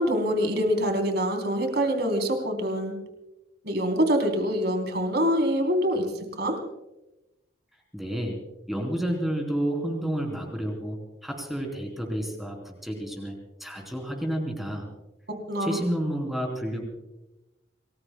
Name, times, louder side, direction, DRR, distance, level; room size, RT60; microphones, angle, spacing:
voice 1, 0.0-3.0 3.6-6.1 6.4-6.6 15.5-15.8, equal, 55° right, 4 dB, 3.8 m, -25 dB
voice 2, 7.9-8.4 8.7-11.0 11.2-13.3 13.6-14.9 15.6-16.8, equal, ahead, 1 dB, 3.6 m, -30 dB
29.0 x 20.5 x 2.3 m, 0.98 s
head